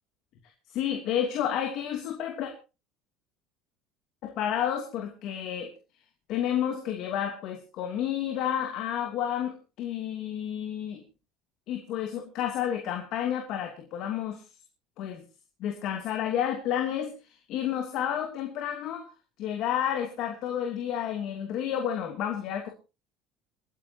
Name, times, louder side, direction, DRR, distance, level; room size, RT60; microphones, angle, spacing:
voice 1, 0.7-2.5 4.2-5.7 6.3-11.0 11.7-14.4 15.0-15.2 15.6-19.1 19.4-22.7, left 10 dB, 60° left, 3 dB, 2.8 m, -30 dB
29.0 x 10.0 x 2.9 m, 0.31 s
supercardioid pair, 115°, 0 cm